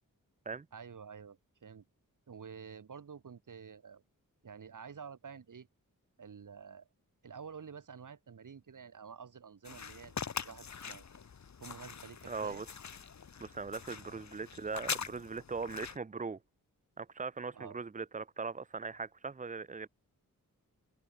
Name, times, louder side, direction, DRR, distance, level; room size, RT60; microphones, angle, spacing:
voice 1, 0.7-1.8 2.3-4.0 4.4-5.7 6.2-6.9 7.2-10.2 10.4-11.2 11.6-12.7 14.0-14.2 17.5-17.8, right 6 dB, 65° right, 3.1 m, -49 dB
sound 1, 9.6-16.0, left 6 dB, 55° left, 1.7 m, -43 dB
voice 2, 12.3-12.7 13.4-16.4 17.0-19.9, right 4 dB, 25° right, 0.7 m, -40 dB
wide cardioid pair, 130°, 34 cm